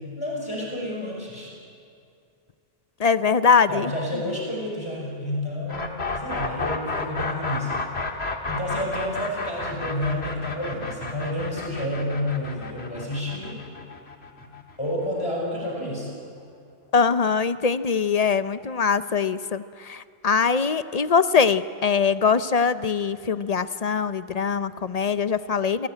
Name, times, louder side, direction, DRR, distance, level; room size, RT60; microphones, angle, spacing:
voice 1, 0.2-1.5 3.7-7.8 8.5-13.6 14.4-14.5 14.8-16.1, left 1 dB, 25° left, -2 dB, 5.4 m, -30 dB
voice 2, 3.0-4.2 16.9-25.9, left 5 dB, 40° left, 13 dB, 0.7 m, -22 dB
sound 1, 5.7-15.5, left 3 dB, 75° left, 2.2 m, -31 dB
28.5 x 18.5 x 9.0 m, 2.4 s
omnidirectional pair, 1.1 m